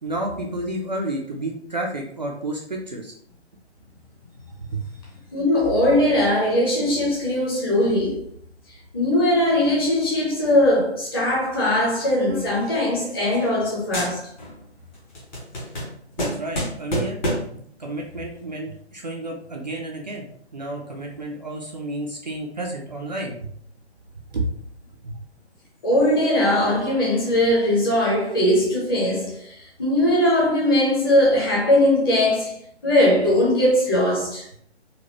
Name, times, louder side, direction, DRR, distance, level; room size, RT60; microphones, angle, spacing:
voice 1, 0.0-3.1 4.7-4.8 16.2-17.2 17.5-23.5 24.3-24.5 25.0-25.2, right 1 dB, 40° right, 0.4 m, -31 dB
voice 2, 5.3-8.2 8.9-14.3 25.8-32.6 32.8-34.5, left 1 dB, 20° left, 0.8 m, -20 dB
sound 1, 12.3-13.7 13.9-14.6 14.9-17.6, equal, 40° left, 1.1 m, -30 dB
4.1 x 2.2 x 2.8 m
figure-of-eight pair, 140°, 34 cm